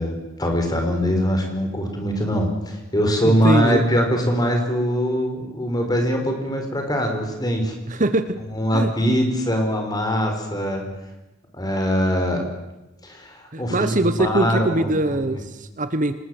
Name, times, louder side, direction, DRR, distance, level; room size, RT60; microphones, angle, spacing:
voice 1, 0.0-7.8 8.5-10.8 11.5-12.4 13.0-14.9, equal, 20° left, 3 dB, 4.7 m, -22 dB
voice 2, 3.2-3.8 7.9-8.4 8.7-8.9 13.5-16.1, right 2 dB, 40° right, 11 dB, 1.1 m, -22 dB
26.5 x 20.0 x 7.9 m, 0.99 s
head